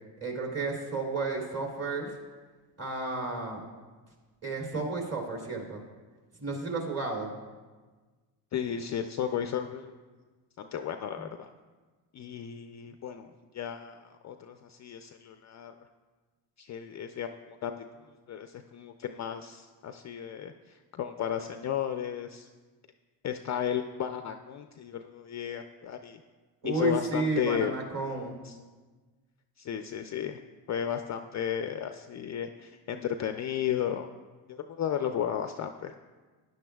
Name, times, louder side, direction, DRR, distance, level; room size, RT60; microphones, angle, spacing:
voice 1, 0.2-2.1 2.8-3.6 4.4-5.8 6.4-7.3 26.6-28.4, right 3 dB, 30° right, 0 dB, 2.8 m, -32 dB
voice 2, 8.5-9.9 10.6-11.5 12.1-13.3 13.5-15.8 16.6-17.8 18.3-22.5 23.2-26.2 26.6-27.7 28.4-28.5 29.6-30.4 30.7-34.1 34.5-35.9, left 9 dB, 40° left, 7 dB, 0.4 m, -34 dB
15.0 x 10.5 x 2.3 m, 1.4 s
cardioid pair, 95°, 48 cm